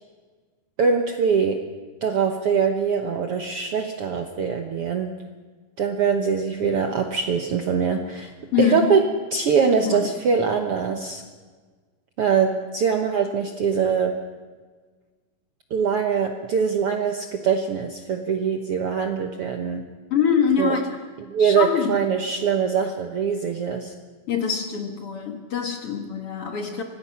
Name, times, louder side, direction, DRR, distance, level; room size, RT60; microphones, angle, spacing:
voice 1, 0.8-1.6 2.0-5.1 5.8-8.3 8.6-9.1 9.3-11.2 12.2-14.1 15.7-19.8 20.6-20.7 21.3-23.9, right 6 dB, 65° right, 4 dB, 1.5 m, -23 dB
voice 2, 8.5-8.9 9.9-10.1 20.1-21.0 21.4-22.0 24.3-26.8, left 7 dB, 50° left, 4 dB, 2.1 m, -24 dB
25.5 x 18.5 x 5.8 m, 1.5 s
omnidirectional pair, 3.9 m